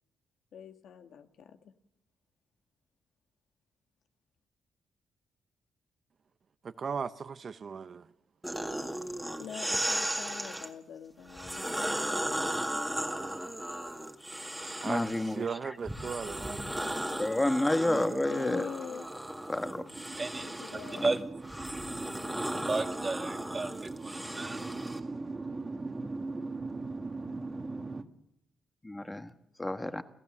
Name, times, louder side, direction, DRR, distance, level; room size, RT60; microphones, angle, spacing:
voice 1, 0.5-1.7 9.4-11.9 18.3-19.1 20.4-21.0, left 8 dB, 80° left, 1.6 m, -44 dB
voice 2, 6.6-8.1 13.2-13.5 14.8-15.0 15.3-16.7 17.9-18.3, right 6 dB, 50° right, 0.8 m, -37 dB
sound 1, 8.4-10.7 11.3-15.4 15.8-25.0, right 1 dB, 5° right, 2.0 m, -36 dB
voice 3, 14.8-15.7 17.2-18.7 19.5-19.8 21.0-21.1 28.8-29.3 29.6-30.0, left 1 dB, 15° left, 1.4 m, -30 dB
voice 4, 19.6-28.0, right 3 dB, 30° right, 1.6 m, -36 dB
30.0 x 14.5 x 7.2 m
cardioid pair, 105°, 0 cm